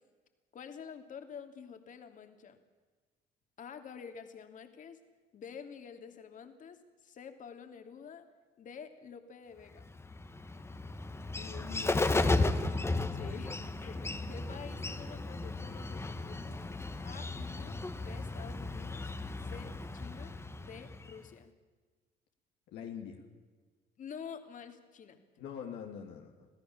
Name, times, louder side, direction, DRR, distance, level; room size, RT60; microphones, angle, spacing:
voice 1, 0.5-2.6 3.6-5.0 5.3-8.3 8.6-9.9 13.1-16.6 17.0-19.1 19.4-21.5 24.0-25.2, left 7 dB, 50° left, 7 dB, 2.9 m, -48 dB
Bird, 9.8-21.3, left 2 dB, 15° left, 1.6 m, -35 dB
voice 2, 11.4-12.4 22.7-23.2 25.4-26.5, left 7 dB, 85° left, 1 dB, 3.0 m, -45 dB
27.0 x 17.0 x 7.4 m, 1.4 s
cardioid pair, 110°, 17 cm